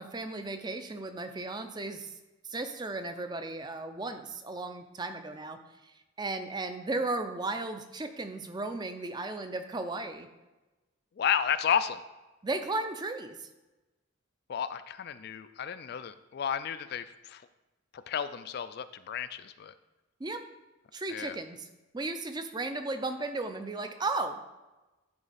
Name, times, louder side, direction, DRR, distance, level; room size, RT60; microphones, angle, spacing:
voice 1, 0.0-2.2 2.4-10.3 12.4-13.5 20.2-20.4 20.9-21.7 21.9-24.4, right 2 dB, 20° right, 8 dB, 0.4 m, -35 dB
voice 2, 11.2-12.0 14.5-17.4 17.9-19.7 21.1-21.4, left 8 dB, 50° left, 13 dB, 0.3 m, -32 dB
10.5 x 3.9 x 4.1 m, 1.1 s
head